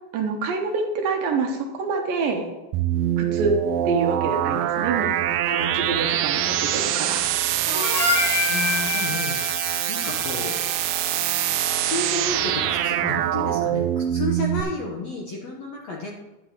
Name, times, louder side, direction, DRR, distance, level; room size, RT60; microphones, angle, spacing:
voice 1, 0.1-2.5 3.2-3.6 3.9-5.1 5.5-7.3, right 4 dB, 70° right, 3 dB, 2.6 m, -26 dB
sound 1, 2.7-14.6, right 11 dB, 90° right, 1.9 m, -24 dB
Harmonica, 7.7-12.2, left 2 dB, 35° left, 3.0 m, -28 dB
voice 2, 8.5-10.9 11.7-16.1, left 3 dB, 70° left, -2 dB, 1.6 m, -32 dB
12.5 x 9.5 x 3.0 m, 1.0 s
omnidirectional pair, 4.6 m